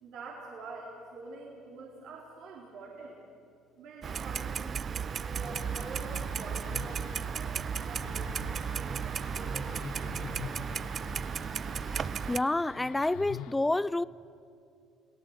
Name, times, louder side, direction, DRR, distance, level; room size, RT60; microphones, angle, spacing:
voice 1, 0.0-3.2 3.8-10.7, right 3 dB, 65° right, 3.8 m, -46 dB
Clock, 4.0-12.4, right 7 dB, 45° right, 0.5 m, -35 dB
sound 1, 5.4-13.5, left 12 dB, 75° left, 0.8 m, -47 dB
sound 2, 5.5-12.2, left 4 dB, 45° left, 2.3 m, -56 dB
voice 2, 12.3-14.0, left 2 dB, 15° left, 0.5 m, -28 dB
29.0 x 18.0 x 8.2 m
hypercardioid pair, 65°, 0 cm